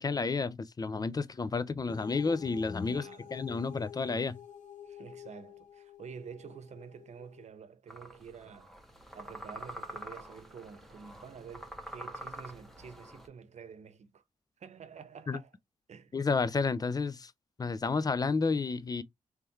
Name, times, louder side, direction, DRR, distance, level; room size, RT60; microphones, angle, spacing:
voice 1, 0.0-4.4 15.3-15.4 16.1-17.3 17.6-19.0, left 4 dB, 30° left, 0.5 m, -31 dB
sound 1, 1.9-7.5, left 9 dB, 80° left, 1.0 m, -50 dB
voice 2, 2.9-3.3 4.8-8.7 9.1-14.2 14.6-15.6 15.9-16.1, right 6 dB, 65° right, 0.8 m, -49 dB
sound 2, 7.9-13.3, equal, ahead, 1.2 m, -46 dB
3.4 x 3.2 x 3.1 m
cardioid pair, 60°, 13 cm